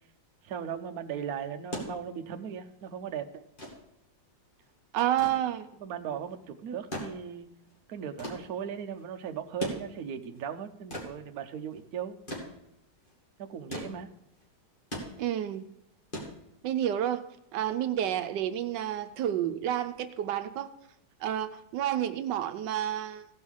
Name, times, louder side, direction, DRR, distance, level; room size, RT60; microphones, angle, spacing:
voice 1, 0.4-3.3 5.8-7.5 7.9-12.2 13.4-14.1, right 8 dB, 65° right, 6 dB, 1.2 m, -37 dB
sound 1, 1.7-17.0 18.2-18.3, equal, 30° left, 2.7 m, -42 dB
voice 2, 4.9-5.7 15.2-15.7 16.6-17.2 17.5-20.7 21.2-23.3, right 11 dB, 85° right, 10 dB, 1.3 m, -30 dB
16.0 x 5.5 x 6.3 m, 0.83 s
omnidirectional pair, 1.9 m